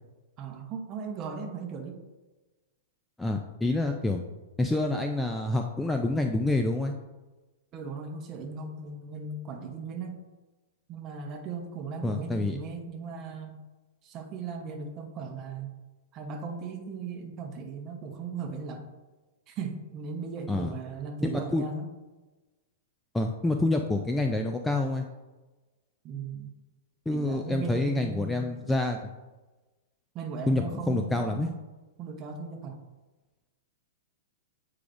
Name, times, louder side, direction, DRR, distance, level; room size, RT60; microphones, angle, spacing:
voice 1, 0.4-2.0 7.7-10.2 10.9-13.6 14.0-15.7 16.1-18.8 19.5-21.9 26.0-26.6 27.1-28.5 30.1-31.6 32.0-32.8, right 5 dB, 30° right, 4 dB, 0.9 m, -37 dB
voice 2, 3.2-4.2 4.6-6.9 12.0-12.6 20.5-20.7 21.2-21.6 23.1-25.1 27.1-29.1 30.5-31.5, left 2 dB, 5° left, 3 dB, 0.3 m, -27 dB
8.4 x 4.8 x 2.6 m, 1.2 s
hypercardioid pair, 155°, 0 cm